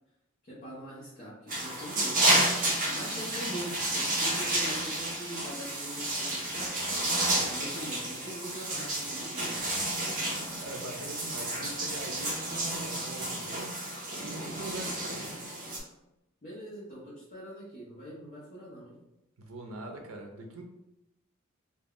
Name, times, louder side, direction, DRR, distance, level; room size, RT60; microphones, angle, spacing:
voice 1, 0.5-2.2 2.6-6.7 7.5-9.6 16.4-19.0, right 1 dB, 35° left, -8 dB, 0.6 m, -43 dB
sound 1, 1.5-15.8, right 1 dB, 40° right, 0.7 m, -31 dB
voice 2, 10.6-13.8 14.2-15.5 19.4-20.6, right 2 dB, 75° right, 2 dB, 0.5 m, -42 dB
2.3 x 2.2 x 3.5 m, 0.90 s
head